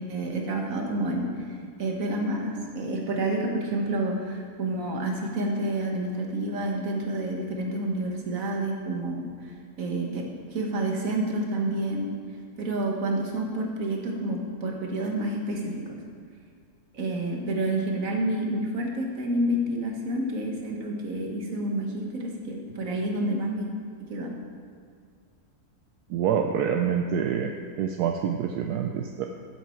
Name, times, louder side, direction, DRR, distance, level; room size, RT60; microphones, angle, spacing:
voice 1, 0.1-1.5 1.8-9.3 9.8-12.1 12.6-15.8 16.9-23.7 24.1-24.4, right 1 dB, 60° right, 1 dB, 1.8 m, -29 dB
voice 2, 26.1-29.3, right 8 dB, 80° right, 4 dB, 1.1 m, -26 dB
13.0 x 7.6 x 4.5 m, 2.2 s
omnidirectional pair, 1.7 m